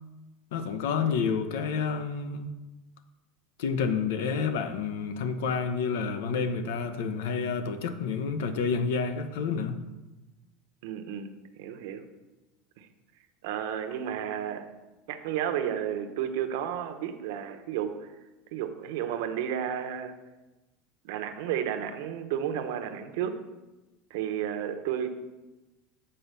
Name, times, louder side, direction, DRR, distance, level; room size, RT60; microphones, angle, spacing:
voice 1, 0.5-2.5 3.6-9.8, left 5 dB, 85° left, 10 dB, 0.8 m, -29 dB
voice 2, 10.8-12.1 12.8-12.9 13.4-14.7 15.1-18.1 18.5-20.1 21.0-23.4 24.1-25.1, right 9 dB, 70° right, 7 dB, 0.8 m, -32 dB
7.8 x 4.1 x 6.8 m, 1.1 s
supercardioid pair, 165°, 0 cm